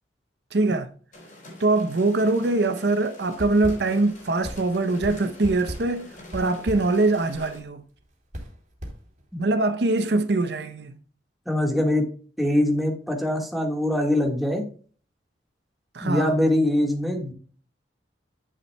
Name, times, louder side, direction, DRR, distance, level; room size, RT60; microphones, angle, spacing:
voice 1, 0.5-0.9 1.6-7.8 9.4-11.0 15.9-16.3, right 2 dB, 65° right, 0.6 m, -23 dB
sound 1, 1.1-7.6, left 1 dB, 45° left, 4.3 m, -46 dB
sound 2, 3.3-9.5, equal, 45° right, 3.0 m, -39 dB
voice 2, 11.5-12.1 12.4-14.6 16.0-17.3, left 1 dB, ahead, 1.5 m, -23 dB
11.0 x 7.0 x 2.2 m
head